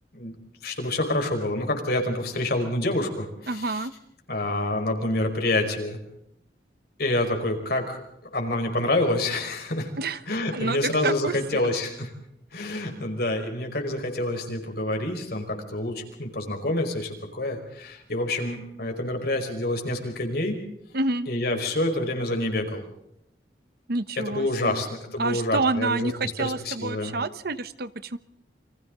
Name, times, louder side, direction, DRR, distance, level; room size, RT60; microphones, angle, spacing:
voice 1, 0.6-3.9 4.3-6.0 7.0-8.0 8.3-9.9 10.3-12.1 12.5-20.6 21.3-22.8 24.2-27.1, left 1 dB, 60° left, 3 dB, 5.0 m, -27 dB
voice 2, 3.5-3.9 10.0-10.2 10.5-11.7 20.9-21.3 23.9-24.8 25.2-28.2, right 3 dB, 60° right, 13 dB, 1.1 m, -28 dB
29.5 x 25.0 x 3.9 m, 0.78 s
head